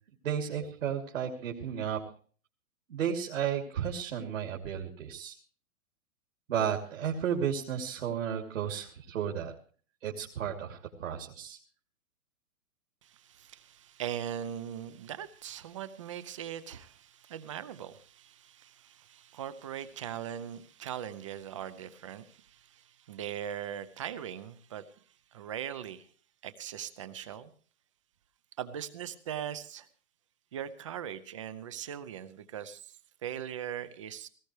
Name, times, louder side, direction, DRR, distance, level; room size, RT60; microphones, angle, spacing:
voice 1, 0.2-2.0 2.9-5.3 6.5-9.5 10.0-11.6, right 8 dB, 65° right, 0 dB, 2.9 m, -33 dB
voice 2, 13.0-24.9 25.3-26.1 26.4-27.5 28.6-29.9 30.5-34.3, right 9 dB, 25° right, 14 dB, 0.6 m, -40 dB
18.5 x 17.0 x 3.2 m, 0.42 s
hypercardioid pair, 165°, 42 cm